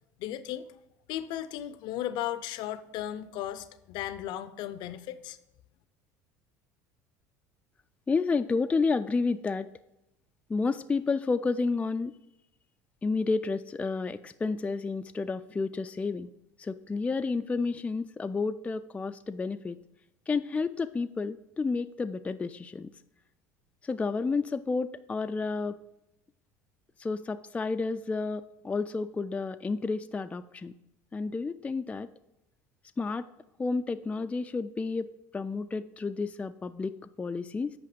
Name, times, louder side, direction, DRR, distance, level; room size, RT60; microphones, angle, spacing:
voice 1, 0.2-0.7 1.1-5.4, left 12 dB, 60° left, 14 dB, 0.5 m, -35 dB
voice 2, 8.1-9.7 10.5-12.1 13.0-16.3 16.6-19.8 20.3-22.9 23.8-25.8 27.0-30.7 31.1-32.1 33.0-33.3 33.6-37.7, left 4 dB, 15° left, 9 dB, 0.4 m, -31 dB
8.3 x 5.1 x 5.0 m, 0.86 s
hypercardioid pair, 85°, 9 cm